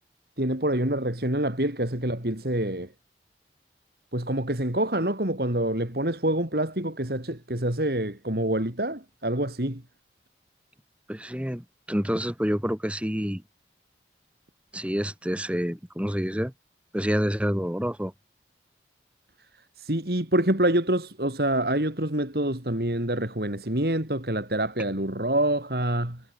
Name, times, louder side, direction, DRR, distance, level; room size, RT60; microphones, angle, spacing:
voice 1, 0.4-2.9 4.1-9.8 19.8-26.2, right 1 dB, 60° right, 3.6 m, -26 dB
voice 2, 11.1-13.4 14.7-16.5 16.9-18.1, equal, 5° right, 1.9 m, -28 dB
head